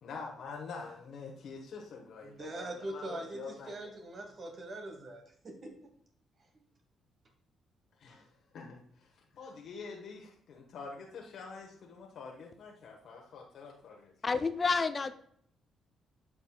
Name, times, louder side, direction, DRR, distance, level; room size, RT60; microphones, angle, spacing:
voice 1, 0.0-3.7 8.0-8.3 8.5-14.1, left 4 dB, 70° left, 0 dB, 1.1 m, -46 dB
voice 2, 2.2-5.9, right 2 dB, 45° right, 3 dB, 1.2 m, -42 dB
voice 3, 14.2-15.1, left 4 dB, 35° left, 11 dB, 0.5 m, -29 dB
8.7 x 6.0 x 2.3 m, 0.65 s
cardioid pair, 90°, 0 cm